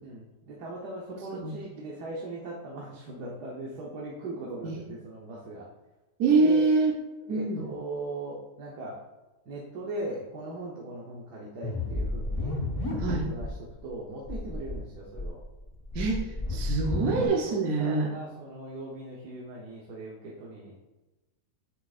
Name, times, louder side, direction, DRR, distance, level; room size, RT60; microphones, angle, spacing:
voice 1, 0.0-5.7 6.4-6.6 7.3-9.0 9.4-12.6 13.1-15.4 17.4-20.8, right 2 dB, 85° right, -3 dB, 1.6 m, -39 dB
voice 2, 6.2-6.9 7.3-7.6 13.0-13.3 15.9-18.1, right 3 dB, 65° right, 0 dB, 1.3 m, -25 dB
sound 1, 11.6-13.5 13.8-13.9 14.2-14.7 15.1-17.3, left 2 dB, 25° left, 1.0 m, -31 dB
8.7 x 6.3 x 2.5 m, 1.1 s
omnidirectional pair, 1.7 m